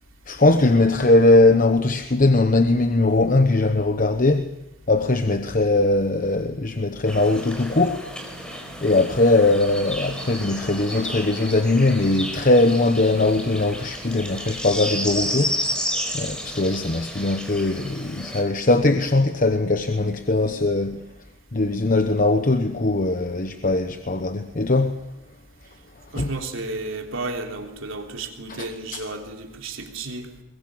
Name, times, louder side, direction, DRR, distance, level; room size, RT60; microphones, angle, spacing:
voice 1, 0.3-4.5 4.9-8.1 8.8-15.6 16.1-21.0 21.5-25.0 26.1-26.3 28.5-29.0, left 2 dB, 40° left, 1.0 m, -20 dB
sound 1, 7.1-18.4, equal, 5° left, 5.0 m, -32 dB
voice 2, 26.1-30.3, right 2 dB, 70° right, 3.5 m, -32 dB
22.0 x 22.0 x 8.8 m
head